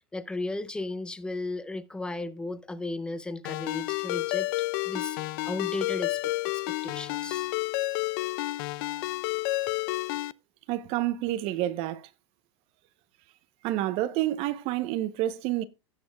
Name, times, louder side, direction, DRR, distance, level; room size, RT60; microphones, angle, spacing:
voice 1, 0.1-4.5 4.8-5.2 5.4-6.3 6.7-7.5, left 2 dB, 5° left, 0.6 m, -35 dB
Ringtone, 3.4-10.3, left 20 dB, 50° left, 0.4 m, -30 dB
voice 2, 10.7-12.1 13.6-15.6, right 14 dB, 40° right, 0.8 m, -29 dB
17.0 x 6.8 x 2.3 m
supercardioid pair, 145°, 15 cm